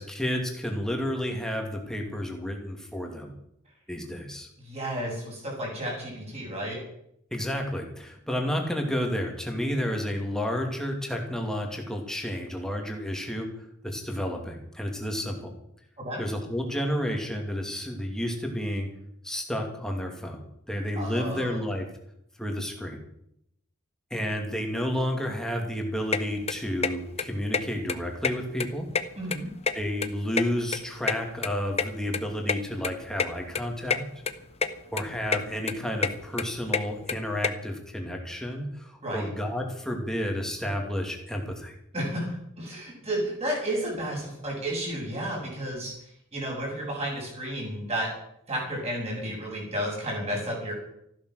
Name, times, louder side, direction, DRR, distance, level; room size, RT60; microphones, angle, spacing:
voice 1, 0.0-3.3 3.9-4.5 7.3-13.5 13.8-15.5 16.2-18.9 19.2-20.4 20.7-21.8 22.4-23.0 24.1-28.9 29.7-34.0 34.9-41.7, equal, 5° left, 2 dB, 2.5 m, -31 dB
voice 2, 4.6-6.8 16.0-16.2 20.9-21.6 29.2-29.5 39.0-39.3 41.9-48.1 48.5-50.7, right 1 dB, 30° right, -2 dB, 7.4 m, -32 dB
sound 1, 26.1-26.2 26.5-26.9 27.2-27.3 27.5-27.6 27.9-28.7 28.9-30.1 30.4-31.9 32.1-32.2 32.5-32.6 32.8-32.9 33.2-33.3 33.6-34.0 34.3-34.7 35.0-35.4 35.7-37.5, left 5 dB, 30° left, 0.8 m, -27 dB
14.5 x 12.0 x 6.5 m, 0.75 s
head